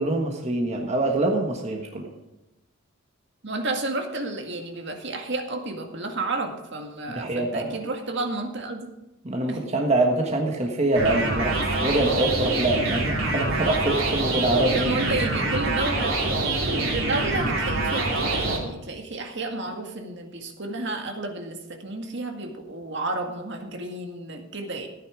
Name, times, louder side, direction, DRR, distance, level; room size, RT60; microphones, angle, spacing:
voice 1, 0.0-2.1 7.1-7.8 9.2-14.9, right 2 dB, 35° right, 1 dB, 1.4 m, -24 dB
voice 2, 3.4-8.9 9.5-9.6 14.8-24.9, right 2 dB, 60° right, 4 dB, 1.9 m, -31 dB
sound 1, 10.9-18.6, right 2 dB, 75° right, 3.4 m, -25 dB
15.0 x 9.6 x 5.0 m, 0.97 s
head